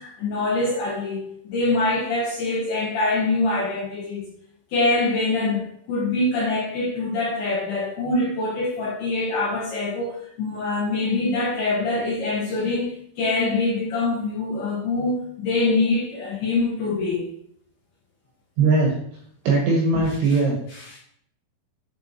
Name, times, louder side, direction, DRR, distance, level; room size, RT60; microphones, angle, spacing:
voice 1, 0.0-4.3 4.7-5.6 5.9-12.9 13.2-17.3 19.9-20.4 20.7-21.0, left 2 dB, 75° left, -6 dB, 2.4 m, -24 dB
voice 2, 18.6-18.9 19.5-20.6, right 3 dB, 75° right, -1 dB, 2.7 m, -19 dB
9.5 x 4.4 x 2.7 m, 0.67 s
omnidirectional pair, 5.9 m